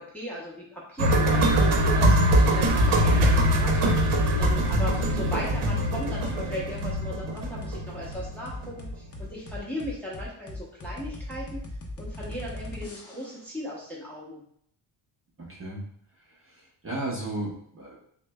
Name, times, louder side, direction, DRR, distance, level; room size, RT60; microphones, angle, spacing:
voice 1, 0.0-11.6 12.0-14.4, left 1 dB, 5° left, -7 dB, 0.8 m, -37 dB
sound 1, 1.0-8.9 9.2-9.3, right 1 dB, 85° right, 0.8 m, -23 dB
sound 2, 3.3-3.7 4.1-4.3 4.7-5.1 5.4-5.6 6.0-6.4 6.8-6.9 7.4-7.8 8.1-13.4, left 1 dB, 30° left, 0.5 m, -38 dB
voice 2, 15.4-15.8 16.3-18.0, right 2 dB, 25° right, -6 dB, 0.7 m, -35 dB
6.2 x 2.1 x 2.2 m, 0.67 s
cardioid pair, 155°, 50 cm